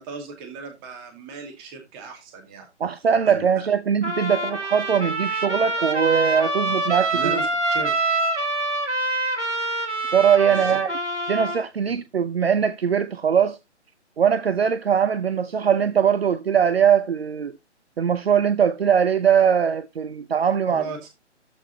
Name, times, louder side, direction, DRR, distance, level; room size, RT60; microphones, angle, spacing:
voice 1, 0.0-2.7 3.3-3.4 6.7-6.8 7.1-7.9 10.5-10.8 20.7-21.0, right 3 dB, 20° right, 2.4 m, -36 dB
voice 2, 2.8-7.4 10.1-10.9 11.3-13.6 14.2-17.5 18.0-20.9, right 7 dB, 60° right, 0.8 m, -21 dB
Trumpet, 4.0-11.6, right 2 dB, 80° right, 2.9 m, -25 dB
13.5 x 4.9 x 3.9 m
figure-of-eight pair, 140°, 35 cm